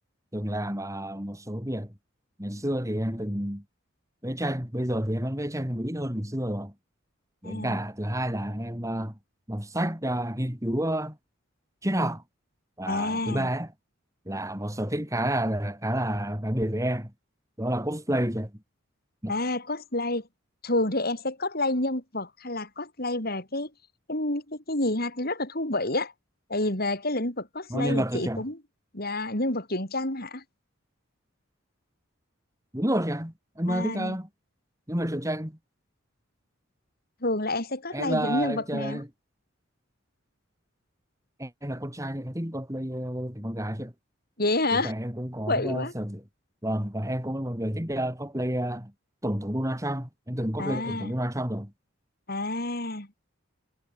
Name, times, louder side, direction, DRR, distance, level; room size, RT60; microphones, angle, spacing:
voice 1, 0.3-1.9 2.4-3.6 4.2-6.7 7.4-9.2 9.5-11.2 11.8-12.2 12.8-13.7 14.2-17.1 17.6-18.5 19.2-19.3 27.7-28.4 32.7-34.3 34.9-35.6 37.9-39.1 41.4-43.9 44.7-46.2 46.6-48.9 49.2-51.7, right 1 dB, 15° right, 6.6 m, -30 dB
voice 2, 7.4-7.8 12.9-13.5 19.3-20.3 20.6-23.7 24.1-26.1 26.5-28.6 28.9-30.4 33.7-34.2 37.2-39.0 44.4-44.9 45.5-45.9 50.6-51.1 52.3-53.1, left 2 dB, 50° left, 5.9 m, -29 dB
head